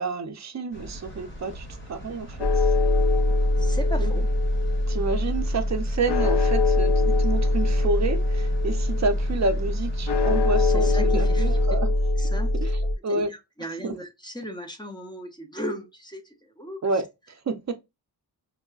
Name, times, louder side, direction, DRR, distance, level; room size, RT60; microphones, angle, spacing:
voice 1, 0.0-2.7 4.0-4.1 4.9-11.9 12.6-13.3 13.8-14.0 16.8-17.7, right 3 dB, 40° right, 0.5 m, -29 dB
sound 1, 0.7-11.7, equal, 30° left, 1.0 m, -41 dB
sound 2, 2.4-12.9, left 2 dB, 75° left, 0.7 m, -22 dB
voice 2, 3.6-4.3 10.7-11.6 12.2-12.5 13.1-16.8, equal, 10° left, 0.5 m, -36 dB
4.6 x 2.1 x 2.3 m
wide cardioid pair, 140°, 42 cm